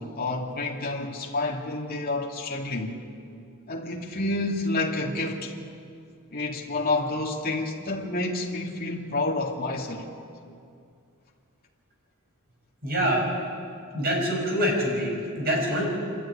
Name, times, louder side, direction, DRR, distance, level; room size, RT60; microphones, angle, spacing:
voice 1, 0.0-2.9 3.7-5.5 6.3-10.0, left 2 dB, 45° left, 2.4 m, -29 dB
voice 2, 12.8-13.3 13.9-15.8, equal, 45° right, 6.4 m, -25 dB
26.0 x 12.5 x 9.9 m
head